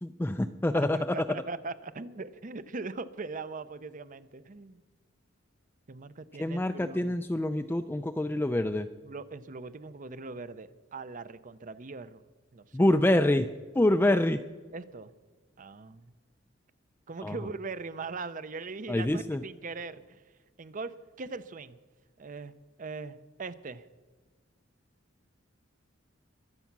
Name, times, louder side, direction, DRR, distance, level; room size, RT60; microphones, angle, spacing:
voice 1, 0.0-1.2 6.4-8.9 12.7-13.5 13.7-14.4 17.2-17.4 18.9-19.4, left 1 dB, 10° left, 7 dB, 0.4 m, -26 dB
voice 2, 0.8-4.8 5.9-7.1 9.0-12.2 12.5-12.6 14.7-15.1 15.6-16.1 17.1-20.2 20.6-21.8 22.2-22.5 22.8-23.8, right 3 dB, 40° right, 15 dB, 0.6 m, -40 dB
22.5 x 8.3 x 6.0 m, 1.4 s
head